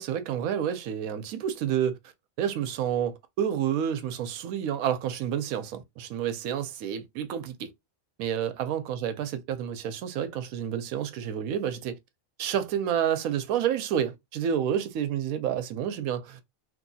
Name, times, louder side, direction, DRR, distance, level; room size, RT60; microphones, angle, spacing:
voice 1, 0.0-2.1 2.4-7.7 8.2-12.0 12.4-16.4, right 9 dB, 80° right, 1.0 m, -29 dB
3.0 x 2.6 x 2.6 m
omnidirectional pair, 1.5 m